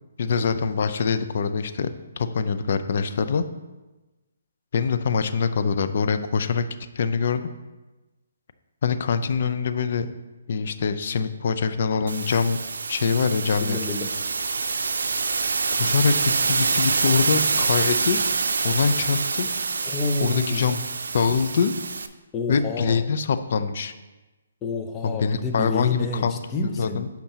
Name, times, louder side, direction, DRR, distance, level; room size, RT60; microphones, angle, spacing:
voice 1, 0.2-1.9 2.2-3.5 4.7-6.7 7.0-7.5 8.8-10.1 10.5-12.6 12.9-13.8 15.7-18.2 18.6-19.5 20.2-20.8 21.1-21.7 22.5-23.9 25.0-27.1, left 5 dB, 55° left, 11 dB, 0.5 m, -24 dB
sound 1, 12.1-22.1, right 4 dB, 80° right, 0.5 m, -26 dB
voice 2, 13.6-14.3 19.9-20.7 22.3-23.0 24.6-27.1, left 3 dB, 15° left, 4 dB, 0.6 m, -29 dB
8.6 x 5.8 x 2.9 m, 1.1 s
hypercardioid pair, 155°, 0 cm